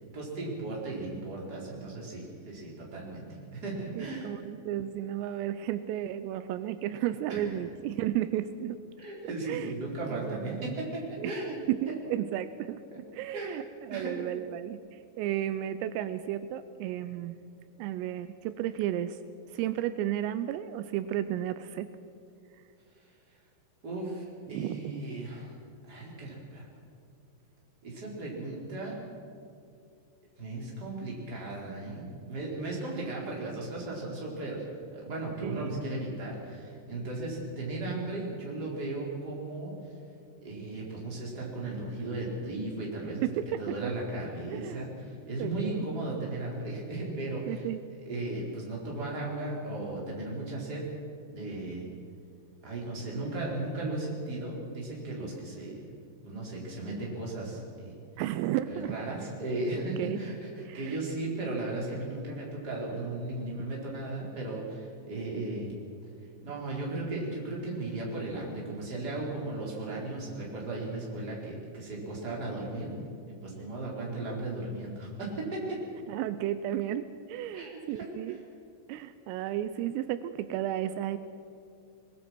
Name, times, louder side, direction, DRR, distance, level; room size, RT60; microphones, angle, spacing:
voice 1, 0.1-3.3 3.5-4.3 7.3-7.6 9.0-11.6 11.9-12.0 12.9-13.0 13.3-13.6 13.9-14.1 23.8-25.5 25.9-26.7 27.8-28.9 30.4-34.6 34.9-39.7 40.4-43.2 43.6-47.7 48.0-50.8 51.3-51.9 52.6-55.7 56.2-58.0 58.7-65.7 66.4-72.9 73.4-75.6 77.5-78.4, right 2 dB, 20° right, -4 dB, 4.6 m, -36 dB
voice 2, 4.0-8.8 9.2-9.7 10.1-10.6 11.2-11.4 11.7-12.8 13.1-17.4 17.8-19.2 19.5-21.9 24.5-25.0 35.4-35.8 43.2-43.9 44.5-44.8 45.4-45.9 47.5-47.8 58.2-59.0 60.0-60.2 60.6-61.0 76.1-78.4 78.9-81.2, right 12 dB, 85° right, 12 dB, 3.3 m, -33 dB
23.0 x 21.0 x 6.2 m, 2.5 s
omnidirectional pair, 5.9 m